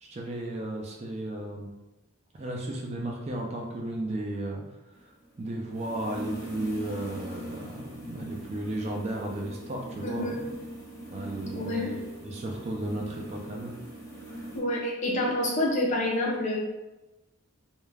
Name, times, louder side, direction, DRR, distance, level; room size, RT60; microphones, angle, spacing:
voice 1, 0.0-1.7 2.3-4.6 5.4-10.3 11.1-13.7, right 1 dB, 30° right, 0 dB, 0.3 m, -34 dB
sound 1, 4.9-14.6, right 1 dB, 15° left, 0.8 m, -41 dB
voice 2, 10.0-10.4 11.5-11.9 14.5-16.6, left 1 dB, 35° left, -2 dB, 0.4 m, -28 dB
2.3 x 2.1 x 3.2 m, 1.0 s
head